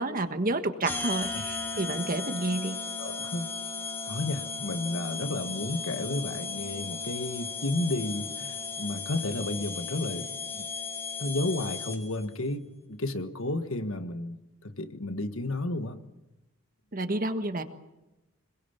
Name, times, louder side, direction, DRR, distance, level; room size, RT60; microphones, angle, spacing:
voice 1, 0.0-2.8 16.9-17.6, right 2 dB, 40° right, 1.5 m, -30 dB
sound 1, 0.9-12.3, left 4 dB, 10° left, 3.0 m, -36 dB
voice 2, 3.0-3.5 4.0-10.7 11.2-16.0, left 2 dB, 70° left, 1.5 m, -32 dB
26.5 x 21.5 x 7.0 m
head